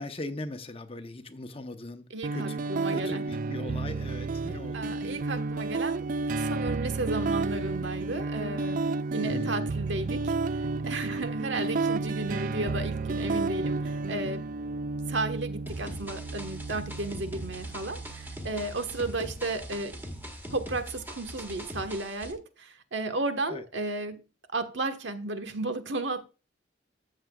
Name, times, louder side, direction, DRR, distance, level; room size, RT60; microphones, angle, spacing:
voice 1, 0.0-2.0 2.3-4.9 9.2-9.5 23.5-23.6, left 2 dB, 30° left, 0.8 m, -39 dB
voice 2, 2.1-3.3 4.7-8.8 9.1-14.4 15.1-20.0 20.5-24.2 24.5-26.2, right 2 dB, 75° right, 1.4 m, -34 dB
sound 1, 2.2-20.2, right 3 dB, 45° right, 0.3 m, -32 dB
sound 2, 15.7-22.3, equal, 10° right, 1.6 m, -41 dB
13.5 x 7.5 x 2.3 m
head